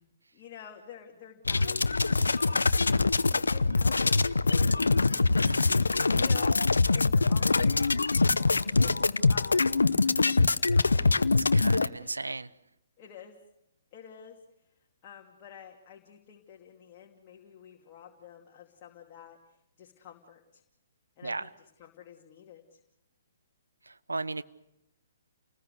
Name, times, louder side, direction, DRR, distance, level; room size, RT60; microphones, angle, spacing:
voice 1, 0.3-5.0 5.8-8.9 9.3-9.5 9.7-10.4 11.9-12.2 13.0-13.4 13.9-14.4 15.0-20.6 21.2-21.5 21.8-22.8, left 9 dB, 35° left, 0 dB, 2.7 m, -50 dB
sound 1, 1.5-11.9, left 3 dB, 80° left, 0.8 m, -24 dB
voice 2, 5.4-5.8 11.0-11.1 11.4-12.5 21.2-21.5 23.9-24.4, right 3 dB, 80° right, 15 dB, 1.0 m, -36 dB
29.5 x 20.0 x 6.8 m, 0.84 s
figure-of-eight pair, 125°, 0 cm